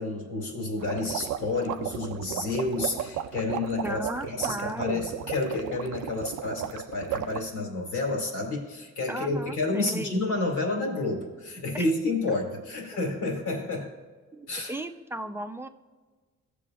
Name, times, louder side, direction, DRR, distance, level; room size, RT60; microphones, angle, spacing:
voice 1, 0.0-13.9 14.5-14.8, left 2 dB, 80° left, 0 dB, 2.9 m, -30 dB
sound 1, 0.8-7.4, right 11 dB, 85° right, 0.5 m, -34 dB
voice 2, 3.8-5.1 9.1-10.2 12.3-12.4 14.3-15.7, right 1 dB, 10° right, 6 dB, 0.6 m, -36 dB
16.0 x 6.8 x 2.5 m, 1.4 s
cardioid pair, 90°, 30 cm